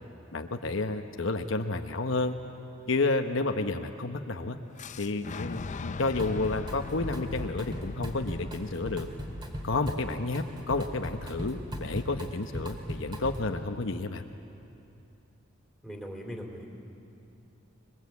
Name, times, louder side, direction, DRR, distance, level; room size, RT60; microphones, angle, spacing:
voice 1, 0.3-2.3 2.9-4.6 5.0-9.1 9.6-14.2, left 3 dB, 70° left, 5 dB, 1.0 m, -30 dB
Boom, 4.8-10.7, left 4 dB, 35° left, 0.5 m, -41 dB
Drum kit, 6.2-6.7 7.0-13.6, equal, 25° right, 2.8 m, -38 dB
voice 2, 15.8-16.7, equal, ahead, 1 dB, 3.3 m, -40 dB
25.5 x 22.0 x 8.4 m, 2.7 s
head